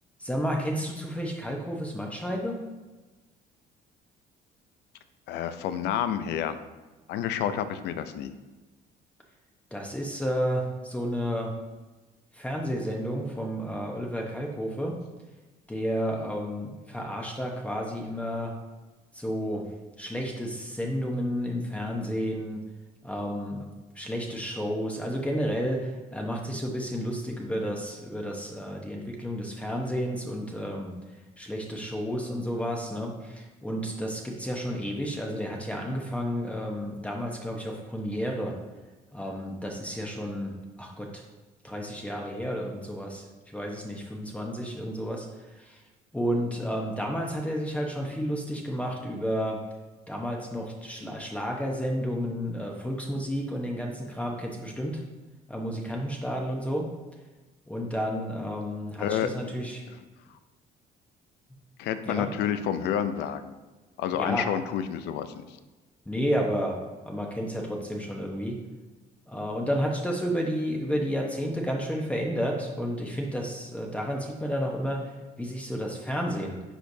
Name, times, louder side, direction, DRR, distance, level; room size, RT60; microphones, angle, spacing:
voice 1, 0.2-2.6 9.7-11.5 12.3-15.0 15.7-18.5 19.1-19.7 20.0-22.6 23.0-23.6 23.9-31.0 31.4-38.5 39.1-41.2 41.6-45.8 46.1-49.6 50.1-55.0 55.5-56.9 57.7-59.8 62.1-62.3 64.1-64.5 66.1-66.8 67.0-68.6 69.3-75.1 75.4-76.6, equal, 5° left, 0 dB, 0.9 m, -31 dB
voice 2, 5.3-6.6 7.1-8.3 59.0-59.7 61.8-63.5 64.0-65.6, left 9 dB, 85° left, 11 dB, 0.5 m, -29 dB
9.8 x 4.6 x 2.7 m, 1.2 s
cardioid pair, 110°, 17 cm